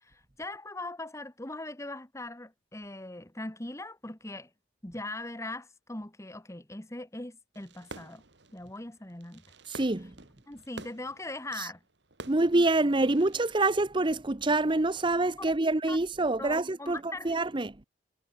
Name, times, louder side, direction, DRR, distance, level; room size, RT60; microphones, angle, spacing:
voice 1, 0.0-4.5 4.8-8.2 8.5-9.4 10.5-11.8 15.4-15.5 15.9-16.0 16.4-17.4, left 2 dB, 15° left, 1.5 m, -40 dB
Fireworks, 7.5-13.6, right 2 dB, 65° right, 2.9 m, -50 dB
voice 2, 9.7-10.1 11.6-11.7 12.3-17.7, right 2 dB, 25° right, 0.8 m, -26 dB
head